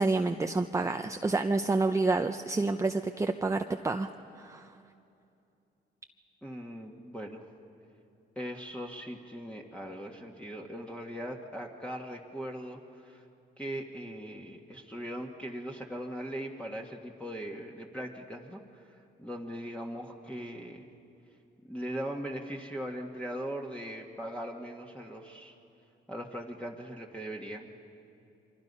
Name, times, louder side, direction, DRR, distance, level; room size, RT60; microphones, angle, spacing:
voice 1, 0.0-4.1 4.4-4.7, right 3 dB, 15° right, 6 dB, 0.7 m, -28 dB
voice 2, 6.4-7.5 8.4-13.2 13.6-18.6 18.9-20.9 21.7-25.5 26.1-27.7, equal, 5° left, 0 dB, 1.7 m, -40 dB
29.5 x 24.5 x 5.5 m, 2.7 s
cardioid pair, 90°, 20 cm